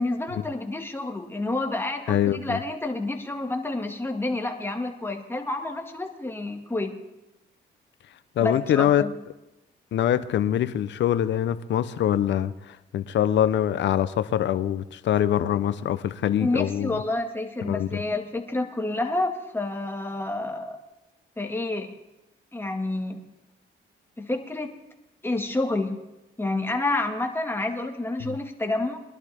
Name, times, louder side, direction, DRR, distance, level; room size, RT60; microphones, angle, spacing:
voice 1, 0.0-6.9 8.4-9.1 16.4-20.8 21.4-21.9 22.5-23.2 24.2-24.7 25.2-26.0 26.4-29.0, left 2 dB, 10° left, 2 dB, 2.0 m, -29 dB
voice 2, 2.1-2.6 8.4-9.0 9.9-17.0 17.6-17.9 28.3-28.4, left 10 dB, 65° left, 13 dB, 0.8 m, -24 dB
21.5 x 11.5 x 3.6 m, 0.96 s
cardioid pair, 90°, 20 cm